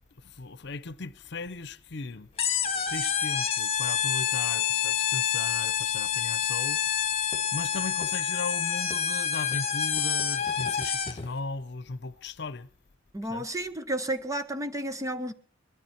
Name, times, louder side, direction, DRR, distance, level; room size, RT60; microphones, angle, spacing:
voice 1, 0.4-2.3 2.9-6.8 7.5-12.7 13.3-13.5, left 3 dB, 65° left, 0.8 m, -37 dB
sound 1, 2.4-11.3, left 8 dB, 30° left, 1.6 m, -28 dB
voice 2, 13.1-15.3, right 1 dB, 15° right, 1.1 m, -32 dB
22.0 x 12.5 x 4.4 m
head